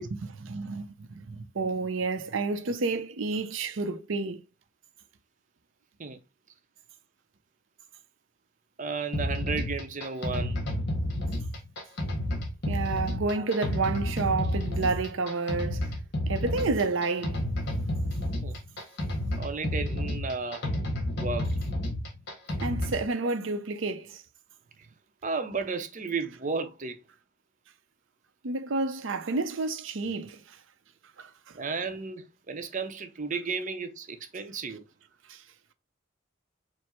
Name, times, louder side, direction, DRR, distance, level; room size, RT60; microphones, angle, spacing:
voice 1, 0.0-4.4 12.7-15.9 16.3-17.5 17.7-18.1 19.3-19.4 22.6-24.2 28.4-30.6 31.2-31.6 35.3-35.4, right 3 dB, 90° right, 0.6 m, -30 dB
voice 2, 8.8-10.7 13.4-13.5 18.4-18.6 19.4-20.7 21.1-21.5 25.2-27.0 31.5-34.8, right 4 dB, 40° right, 0.7 m, -33 dB
sound 1, 9.1-23.1, left 1 dB, 60° left, 1.2 m, -31 dB
4.6 x 2.1 x 4.4 m
head